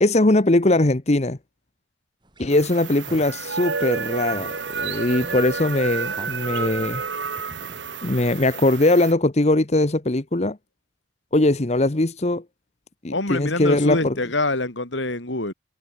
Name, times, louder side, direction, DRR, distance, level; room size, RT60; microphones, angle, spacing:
voice 1, 0.0-1.4 2.4-7.0 8.0-10.6 11.3-12.4 13.0-14.1, left 2 dB, 35° left, 1.1 m, -20 dB
sound 1, 2.2-3.8 4.2-4.7 5.0-8.1, right 1 dB, 25° right, 7.2 m, -44 dB
sound 2, 2.5-9.1, right 5 dB, 75° right, 1.9 m, -30 dB
voice 2, 13.1-15.5, left 2 dB, 80° left, 4.3 m, -25 dB
head